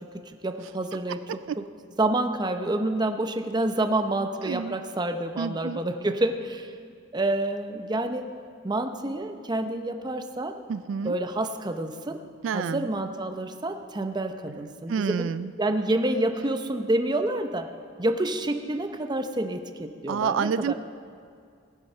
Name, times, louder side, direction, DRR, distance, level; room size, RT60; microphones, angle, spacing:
voice 1, 0.4-1.2 2.0-6.7 7.1-8.3 8.6-10.6 11.0-12.2 12.5-15.3 15.6-17.7 18.0-20.7, right 1 dB, 20° right, 6 dB, 0.7 m, -28 dB
voice 2, 4.4-4.8 5.4-5.8 10.7-11.2 12.4-12.9 14.9-15.5 20.1-20.7, right 6 dB, 85° right, 14 dB, 0.3 m, -28 dB
19.5 x 7.7 x 5.6 m, 2.3 s
head